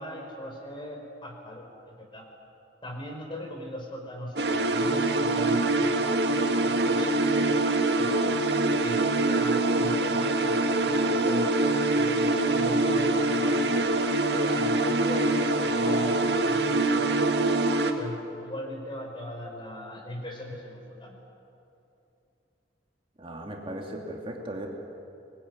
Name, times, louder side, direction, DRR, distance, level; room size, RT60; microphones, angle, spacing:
voice 1, 0.0-2.2 2.8-5.9 6.6-8.3 8.8-11.5 11.9-17.4 18.0-21.2, left 1 dB, 30° left, 2 dB, 5.0 m, -40 dB
sound 1, 4.4-17.9, right 2 dB, 70° right, 2.0 m, -24 dB
voice 2, 23.2-24.7, right 1 dB, 30° right, 0 dB, 2.6 m, -37 dB
25.0 x 20.5 x 9.7 m, 2.7 s
head